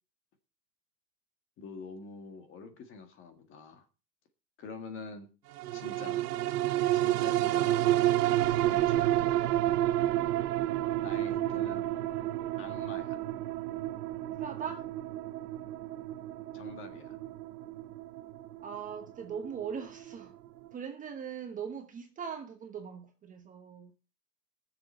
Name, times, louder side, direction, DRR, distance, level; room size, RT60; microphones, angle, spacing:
voice 1, 1.6-3.9 4.6-5.3 5.7-6.2 6.9-9.3 11.0-11.9 12.6-13.2 16.5-17.2, left 4 dB, 25° left, 1.7 m, -46 dB
sound 1, 5.6-20.2 20.7-20.8, right 14 dB, 75° right, 0.9 m, -30 dB
voice 2, 14.4-14.8 18.6-20.3 20.7-23.9, right 7 dB, 15° right, 1.1 m, -40 dB
20.5 x 7.3 x 4.2 m
supercardioid pair, 150°, 47 cm